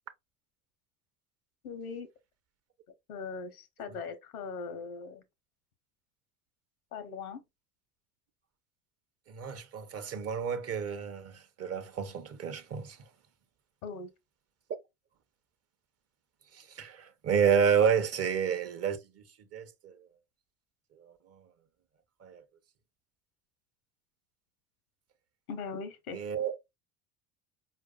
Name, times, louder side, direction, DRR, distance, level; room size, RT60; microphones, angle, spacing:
voice 1, 1.6-2.1 3.1-5.2 6.9-7.4 13.8-14.1 25.5-26.2, left 5 dB, 85° left, 0.8 m, -40 dB
voice 2, 9.3-13.1 16.5-19.2 19.5-20.0 21.0-21.4 22.2-22.4 26.1-26.5, right 7 dB, 35° right, 0.6 m, -30 dB
4.6 x 2.5 x 2.3 m
hypercardioid pair, 65°, 43 cm